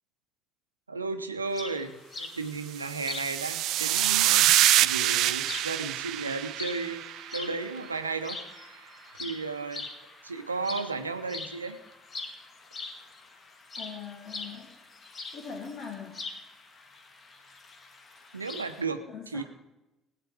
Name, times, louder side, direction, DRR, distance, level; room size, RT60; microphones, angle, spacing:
voice 1, 0.9-4.5 4.8-7.0 7.3-8.9 9.2-9.9 10.2-11.8 18.3-19.0 19.3-19.4, right 4 dB, 85° right, 9 dB, 0.8 m, -34 dB
sound 1, 1.5-18.8, left 3 dB, 35° left, 1.7 m, -43 dB
sound 2, 2.8-7.3, right 15 dB, 60° right, 0.3 m, -25 dB
voice 2, 13.8-14.8 15.3-16.3 19.1-19.4, left 6 dB, 55° left, 0 dB, 1.7 m, -41 dB
18.5 x 8.8 x 4.9 m, 0.98 s
figure-of-eight pair, 55°, 0 cm